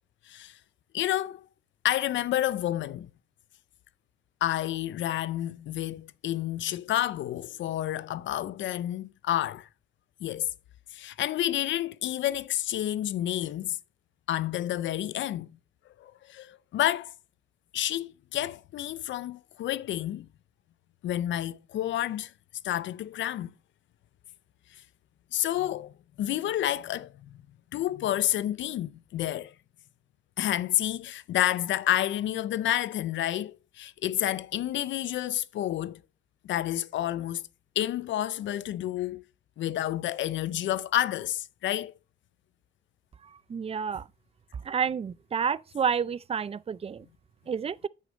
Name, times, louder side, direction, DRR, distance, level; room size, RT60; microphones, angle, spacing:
voice 1, 0.3-0.6 0.9-1.4 1.8-3.1 4.4-9.7 10.2-10.5 10.9-13.8 14.3-15.5 16.0-17.1 17.7-20.3 21.0-22.3 22.6-23.5 25.3-27.4 27.7-29.5 30.4-36.0 36.4-37.4 37.8-39.2 39.6-41.9, left 13 dB, 70° left, 0.6 m, -29 dB
voice 2, 43.5-44.1 44.6-47.1 47.5-47.9, right 6 dB, 30° right, 0.5 m, -29 dB
8.4 x 6.6 x 3.9 m
cardioid pair, 90°, 20 cm